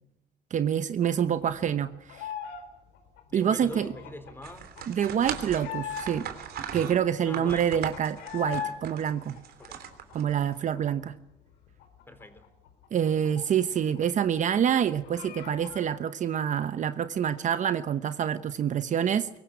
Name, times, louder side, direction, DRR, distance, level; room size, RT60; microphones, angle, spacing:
voice 1, 0.5-2.3 3.3-3.9 4.9-6.3 6.7-9.4 10.1-11.1 12.9-19.3, right 9 dB, 45° right, 11 dB, 0.9 m, -27 dB
sound 1, 1.0-2.6 2.9-6.4 6.8-6.9 7.1-8.7 9.1-10.8 11.1-11.2 11.5-14.0 14.2-14.3 14.7-15.8, left 8 dB, 90° left, 4.3 m, -40 dB
voice 2, 3.3-4.7 7.3-7.7 9.6-9.8 12.1-12.4, left 1 dB, 15° left, 9 dB, 3.9 m, -42 dB
sound 2, 4.4-10.5, right 8 dB, 65° right, 3.2 m, -39 dB
22.5 x 19.0 x 8.3 m, 0.86 s
cardioid pair, 110°, 17 cm